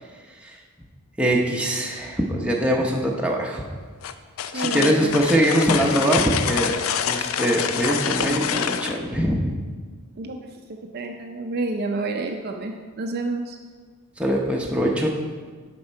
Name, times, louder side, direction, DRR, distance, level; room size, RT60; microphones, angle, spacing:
voice 1, 1.2-3.6 4.5-6.8 7.1-9.6 14.2-15.1, equal, 5° right, -1 dB, 0.7 m, -22 dB
sound 1, 4.0-9.0, left 8 dB, 65° left, 0.4 m, -26 dB
voice 2, 4.5-5.2 10.2-13.6, right 2 dB, 45° right, 3 dB, 0.4 m, -29 dB
7.2 x 5.3 x 4.4 m, 1.5 s
head